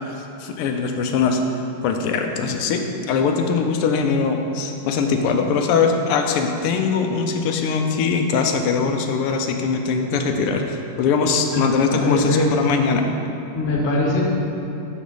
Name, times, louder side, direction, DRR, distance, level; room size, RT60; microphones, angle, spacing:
voice 1, 0.2-1.4 1.8-13.1, left 5 dB, 90° left, 4 dB, 1.5 m, -21 dB
voice 2, 11.5-12.5 13.5-14.2, left 2 dB, 40° left, -2 dB, 1.0 m, -22 dB
8.0 x 6.1 x 3.9 m, 3.0 s
omnidirectional pair, 2.4 m